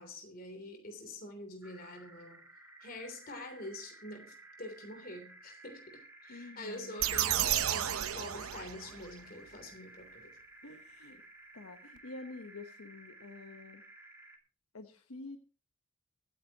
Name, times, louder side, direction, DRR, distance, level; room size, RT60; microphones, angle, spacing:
voice 1, 0.0-2.4 2.8-10.4, left 1 dB, 45° left, 6 dB, 3.2 m, -46 dB
sound 1, 1.6-14.4, right 2 dB, 10° right, 2.1 m, -55 dB
voice 2, 6.3-7.0 10.6-11.2 11.5-13.8 14.7-15.4, left 3 dB, 85° left, 7 dB, 1.2 m, -48 dB
sound 2, 7.0-9.1, right 11 dB, 85° right, 0.8 m, -32 dB
24.0 x 9.2 x 3.0 m, 0.36 s
head